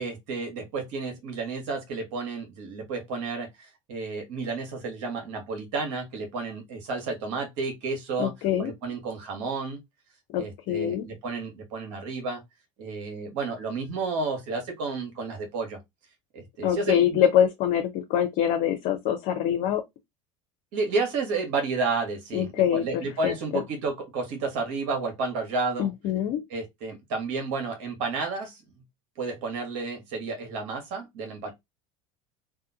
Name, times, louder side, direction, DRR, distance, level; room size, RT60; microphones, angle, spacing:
voice 1, 0.0-8.3 8.6-9.8 10.4-12.4 12.8-15.8 16.3-17.2 20.7-25.9 26.5-28.6 29.2-31.5, right 4 dB, 70° right, 1.3 m, -31 dB
voice 2, 8.2-8.7 10.3-11.1 16.6-19.8 22.3-22.8 23.2-23.6 25.8-26.4, left 9 dB, 55° left, 0.6 m, -24 dB
2.7 x 2.5 x 2.7 m
hypercardioid pair, 80°, 17 cm